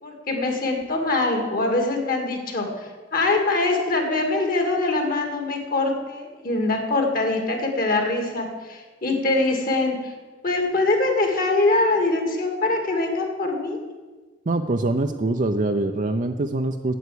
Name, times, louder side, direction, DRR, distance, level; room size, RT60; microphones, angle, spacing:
voice 1, 0.0-2.7 3.1-10.1 10.4-13.8, left 2 dB, 50° left, 3 dB, 2.1 m, -23 dB
voice 2, 14.5-17.0, right 2 dB, 45° right, 5 dB, 0.5 m, -24 dB
9.2 x 8.1 x 8.4 m, 1.3 s
head